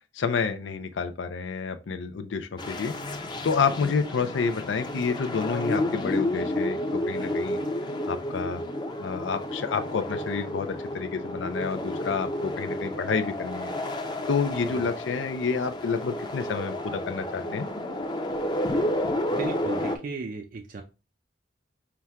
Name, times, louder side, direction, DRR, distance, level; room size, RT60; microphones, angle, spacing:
voice 1, 0.1-2.9 3.4-6.8 7.1-7.6 8.1-8.6 9.0-13.7 14.3-17.7, left 5 dB, 80° left, 8 dB, 0.5 m, -29 dB
sound 1, 2.6-20.0, left 1 dB, 25° left, 0.6 m, -31 dB
voice 2, 19.3-20.8, right 4 dB, 50° right, 5 dB, 0.4 m, -36 dB
5.8 x 2.2 x 3.5 m, 0.30 s
head